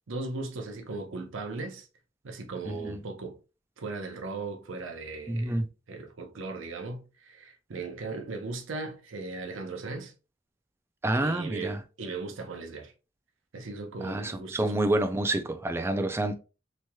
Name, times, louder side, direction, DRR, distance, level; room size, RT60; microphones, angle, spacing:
voice 1, 0.1-1.9 2.2-3.4 3.8-5.6 5.9-10.1 11.2-12.9 13.5-14.7, right 3 dB, 75° right, 0.6 m, -37 dB
voice 2, 2.6-3.0 5.3-5.6 11.0-11.8 14.0-16.3, right 1 dB, 15° right, 0.3 m, -28 dB
3.1 x 2.8 x 2.2 m
head